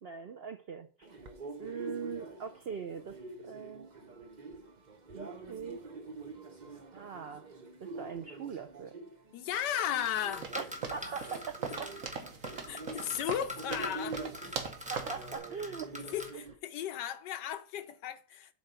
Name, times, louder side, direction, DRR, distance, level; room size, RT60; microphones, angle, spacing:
voice 1, 0.0-1.1 1.6-3.2 3.4-3.9 5.1-5.8 6.9-7.5 7.8-8.9 10.5-10.6 10.9-11.9 14.9-15.9, right 6 dB, 75° right, 0.5 m, -41 dB
sound 1, 1.0-16.5, right 3 dB, 35° right, 0.8 m, -46 dB
voice 2, 9.3-10.6 12.7-14.6 16.0-18.5, left 10 dB, 80° left, 1.4 m, -36 dB
sound 2, 10.0-16.3, left 1 dB, 5° right, 0.9 m, -44 dB
sound 3, 10.4-15.3, right 5 dB, 50° right, 1.4 m, -41 dB
7.8 x 4.5 x 6.8 m
omnidirectional pair, 1.8 m